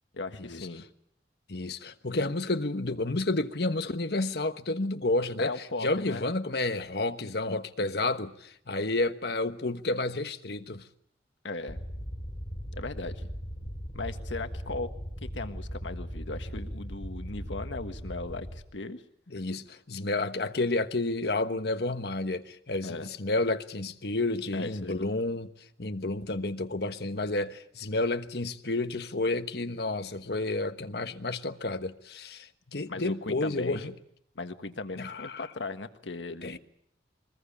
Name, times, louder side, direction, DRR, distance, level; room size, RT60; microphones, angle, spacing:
voice 1, 0.1-0.8 5.4-6.2 11.4-11.8 12.7-13.3 13.9-14.9 15.2-19.0 22.8-23.1 24.5-25.1 32.8-33.9 34.3-36.6, left 3 dB, 85° left, 1.6 m, -37 dB
voice 2, 1.5-10.9 19.3-25.5 25.8-33.9 35.0-35.5 36.4-36.6, left 2 dB, 60° left, 1.3 m, -30 dB
sound 1, 11.7-18.6, equal, 35° left, 4.4 m, -38 dB
23.0 x 20.5 x 8.6 m
head